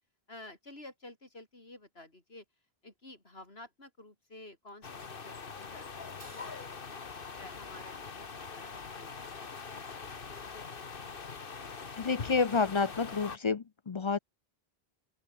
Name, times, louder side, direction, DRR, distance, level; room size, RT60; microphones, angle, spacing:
voice 1, 0.3-2.5 2.8-5.9 6.1-7.0 7.4-10.3, left 2 dB, 75° left, 5.1 m, -52 dB
sound 1, 4.8-13.4, left 5 dB, 60° left, 1.6 m, -43 dB
Crash cymbal, 6.2-8.6, right 3 dB, 85° right, 3.7 m, -61 dB
voice 2, 12.0-14.2, left 4 dB, 40° left, 0.5 m, -29 dB
open air
omnidirectional pair, 1.0 m